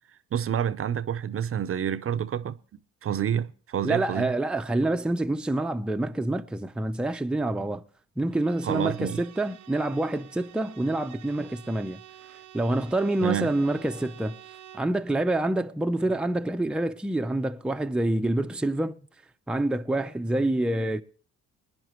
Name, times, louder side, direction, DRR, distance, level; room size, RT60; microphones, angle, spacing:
voice 1, 0.3-2.6 3.0-4.3 8.6-9.2 13.2-13.5, right 9 dB, 45° right, 0.6 m, -28 dB
voice 2, 3.8-7.8 8.2-12.0 12.5-14.4 14.7-19.0 19.5-21.0, right 1 dB, 5° right, 0.6 m, -27 dB
Bowed string instrument, 8.3-15.0, right 12 dB, 80° right, 0.9 m, -49 dB
20.5 x 10.5 x 3.0 m
cardioid pair, 90°, 30 cm